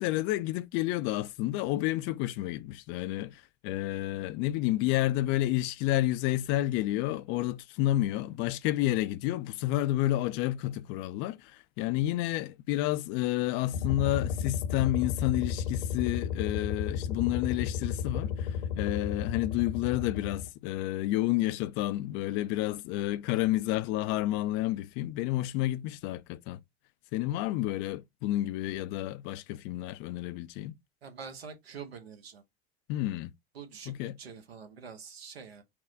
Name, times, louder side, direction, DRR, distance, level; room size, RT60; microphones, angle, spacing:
voice 1, 0.0-26.6 27.1-30.7 32.9-33.3 33.9-34.2, left 15 dB, 40° left, 0.4 m, -30 dB
sound 1, 13.7-20.5, left 7 dB, 65° left, 0.9 m, -33 dB
voice 2, 31.0-32.4 33.5-33.9 34.2-35.6, right 6 dB, 75° right, 1.2 m, -45 dB
5.9 x 2.3 x 3.9 m
figure-of-eight pair, 80°, 31 cm